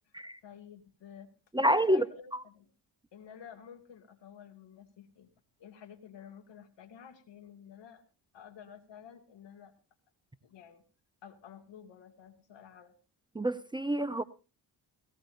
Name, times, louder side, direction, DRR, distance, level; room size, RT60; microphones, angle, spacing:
voice 1, 0.4-1.3 1.6-2.7 3.1-5.3 5.6-8.0 8.3-9.7 10.4-10.8 11.2-12.9, left 8 dB, 75° left, 2.4 m, -51 dB
voice 2, 1.5-2.0 13.3-14.2, right 1 dB, 10° right, 0.7 m, -27 dB
18.5 x 17.5 x 2.6 m
cardioid pair, 90°, 43 cm